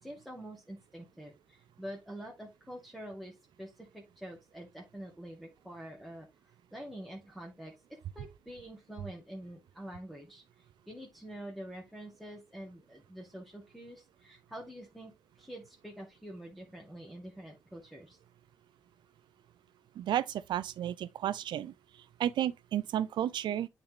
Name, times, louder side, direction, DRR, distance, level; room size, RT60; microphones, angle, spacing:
voice 1, 0.0-6.3 6.7-7.7 8.2-10.4 10.9-15.1 15.4-18.2, right 1 dB, ahead, 2.2 m, -46 dB
voice 2, 20.0-21.7 22.2-23.7, right 11 dB, 75° right, 0.4 m, -32 dB
8.5 x 4.0 x 2.9 m
supercardioid pair, 45°, 8 cm